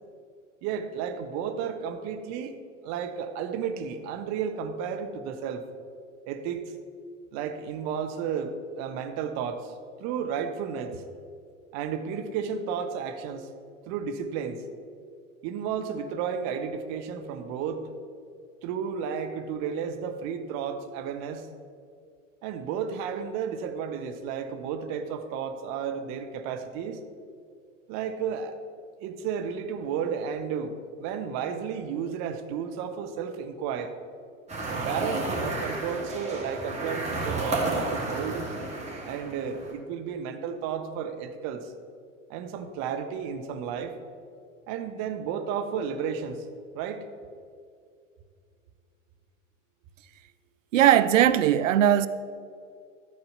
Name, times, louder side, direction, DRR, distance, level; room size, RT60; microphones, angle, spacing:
voice 1, 0.6-2.5 2.8-5.6 6.3-6.6 7.3-9.7 10.0-11.0 11.7-13.5 13.9-14.6 15.4-17.9 18.6-21.5 22.4-27.0 27.9-28.6 29.0-33.9 34.7-38.4 39.0-41.7 42.3-43.9 44.7-46.4 46.7-47.0, right 7 dB, 45° right, 1.0 m, -32 dB
sound 1, 34.5-39.7, right 2 dB, 15° right, 2.3 m, -31 dB
voice 2, 50.7-52.1, right 11 dB, 75° right, 0.5 m, -19 dB
12.5 x 4.6 x 6.6 m
figure-of-eight pair, 80°, 39 cm